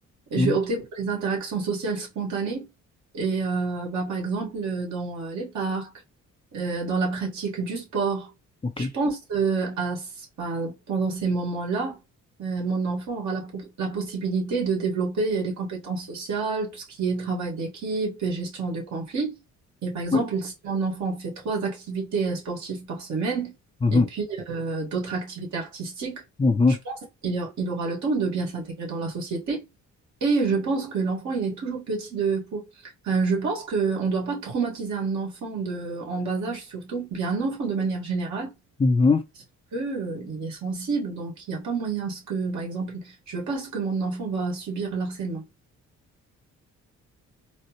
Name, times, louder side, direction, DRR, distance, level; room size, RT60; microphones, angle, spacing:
voice 1, 0.3-2.7 3.1-5.9 6.5-8.3 8.8-10.1 10.4-12.0 12.4-19.4 19.8-23.5 23.9-26.2 26.7-27.0 27.2-29.6 30.2-32.6 33.0-38.5 39.7-45.4, right 4 dB, 70° right, 1.9 m, -28 dB
voice 2, 26.4-26.8 38.8-39.2, left 3 dB, 20° left, 0.5 m, -20 dB
4.1 x 2.0 x 3.0 m
cardioid pair, 90°, 30 cm